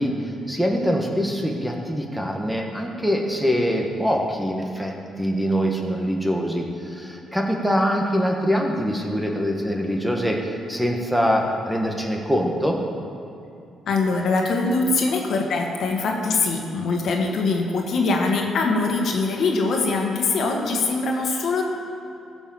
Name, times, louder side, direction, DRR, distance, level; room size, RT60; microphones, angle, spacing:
voice 1, 0.0-12.8, equal, 5° right, 1 dB, 1.5 m, -24 dB
voice 2, 13.9-21.6, left 3 dB, 65° left, 1 dB, 1.7 m, -22 dB
15.5 x 6.1 x 7.1 m, 2.6 s
cardioid pair, 90°, 0 cm